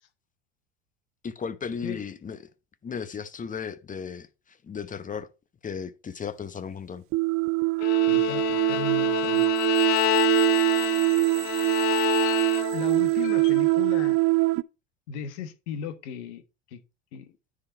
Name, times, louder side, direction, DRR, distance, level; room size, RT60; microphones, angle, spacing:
voice 1, 1.2-2.4 2.8-5.3 5.6-7.0, left 6 dB, 25° left, 0.9 m, -35 dB
sound 1, 7.1-14.6, right 24 dB, 40° right, 0.4 m, -23 dB
Bowed string instrument, 7.8-13.0, left 21 dB, 50° left, 0.4 m, -28 dB
voice 2, 8.1-9.5 11.8-14.2 15.1-16.4 16.7-16.8 17.1-17.3, left 7 dB, 75° left, 1.3 m, -36 dB
9.9 x 3.9 x 4.5 m
hypercardioid pair, 85°, 35 cm